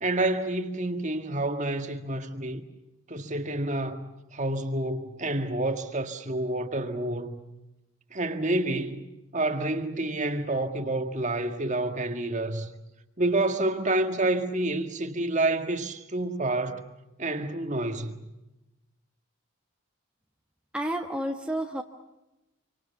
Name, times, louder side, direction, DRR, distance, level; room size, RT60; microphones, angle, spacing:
voice 1, 0.0-2.6 3.1-7.4 8.1-9.1 9.3-12.7 13.2-16.9 17.2-18.3, right 2 dB, 35° right, 1.8 m, -28 dB
voice 2, 20.7-21.8, right 1 dB, 5° right, 1.2 m, -30 dB
27.5 x 25.0 x 7.0 m
head